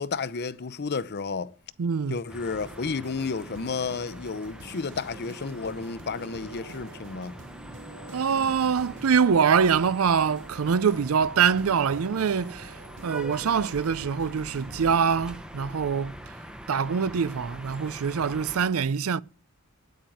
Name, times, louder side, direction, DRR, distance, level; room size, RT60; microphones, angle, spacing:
voice 1, 0.0-1.5 2.1-7.3, left 4 dB, 50° left, 0.6 m, -32 dB
voice 2, 1.8-2.2 8.1-12.8 13.0-16.2 16.7-19.2, right 6 dB, 75° right, 0.5 m, -24 dB
sound 1, 2.3-18.6, right 1 dB, 5° right, 0.9 m, -43 dB
sound 2, 2.6-15.2, right 3 dB, 60° right, 0.9 m, -47 dB
9.3 x 8.6 x 9.2 m
head